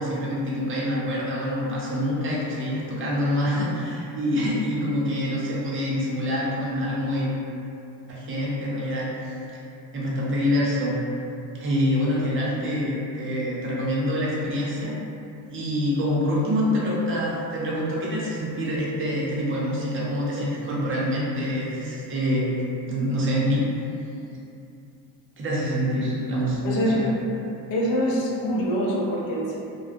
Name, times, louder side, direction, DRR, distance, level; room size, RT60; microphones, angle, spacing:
voice 1, 0.0-7.3 8.1-9.3 9.9-11.0 11.6-14.9 15.5-22.5 22.9-23.6 25.4-26.6 26.9-27.1, equal, 30° right, -5 dB, 0.6 m, -26 dB
voice 2, 26.6-27.0 27.7-29.6, equal, 65° left, -4 dB, 0.6 m, -24 dB
2.2 x 2.1 x 2.6 m, 2.7 s
cardioid pair, 95°, 40 cm